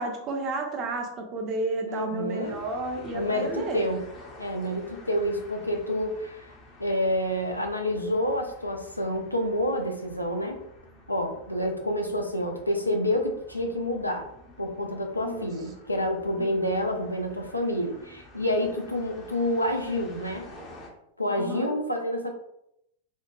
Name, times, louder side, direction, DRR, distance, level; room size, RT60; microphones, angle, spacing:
voice 1, 0.0-3.9 15.2-15.5 16.4-16.5 21.4-21.8, right 2 dB, 35° right, 2 dB, 0.6 m, -32 dB
voice 2, 1.9-2.6 3.1-4.0 4.4-6.5 6.8-10.6 11.1-14.3 14.6-20.5 21.2-22.3, left 1 dB, 85° left, 3 dB, 0.4 m, -28 dB
sound 1, 2.4-20.9, left 1 dB, 30° left, 0.6 m, -50 dB
2.9 x 2.1 x 2.5 m, 0.79 s
figure-of-eight pair, 90°, 0 cm